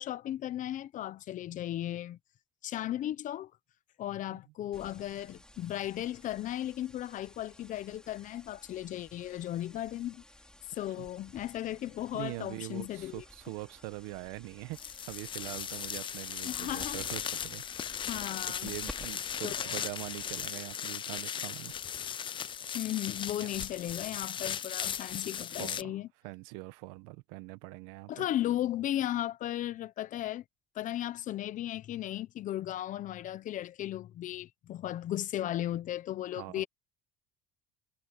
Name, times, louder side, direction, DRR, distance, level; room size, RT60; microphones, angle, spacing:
voice 1, 0.0-2.2 2.6-3.5 4.0-10.2 10.7-13.2 16.4-17.0 18.1-18.7 19.4-19.5 22.7-26.1 28.1-30.4 30.7-36.6, left 13 dB, 50° left, 1.0 m, -36 dB
sound 1, 4.7-20.7, left 1 dB, 5° left, 3.7 m, -54 dB
voice 2, 12.1-17.6 18.6-21.7 23.4-23.5 25.6-26.0 26.2-28.3 36.3-36.7, right 21 dB, 85° right, 1.5 m, -43 dB
sound 2, 14.7-25.8, left 8 dB, 30° left, 0.5 m, -37 dB
supercardioid pair, 105°, 17 cm